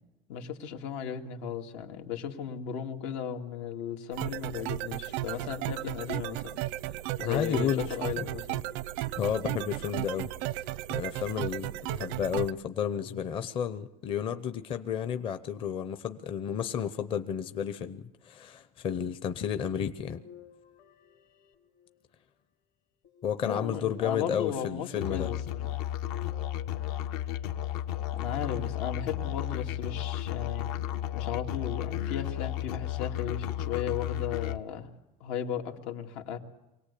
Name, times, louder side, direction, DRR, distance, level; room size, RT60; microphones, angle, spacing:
voice 1, 0.3-6.6 7.2-8.6 12.0-12.2 13.0-13.2 23.4-25.7 28.1-30.7 31.1-34.9 35.2-36.4, left 8 dB, 85° left, 4 dB, 2.4 m, -36 dB
sound 1, 4.1-12.5, right 16 dB, 90° right, 0.7 m, -35 dB
voice 2, 7.2-7.9 9.2-10.3 10.9-20.2 23.2-25.3, left 8 dB, 30° left, 11 dB, 0.7 m, -32 dB
sound 2, 20.0-22.3 23.0-24.0 26.0-28.1 29.0-29.9 30.5-30.6 32.0-32.1, left 8 dB, 55° left, 1.8 m, -55 dB
Musical instrument, 25.0-34.6, left 12 dB, 70° left, 1.2 m, -33 dB
24.5 x 18.0 x 8.4 m, 0.97 s
cardioid pair, 170°, 17 cm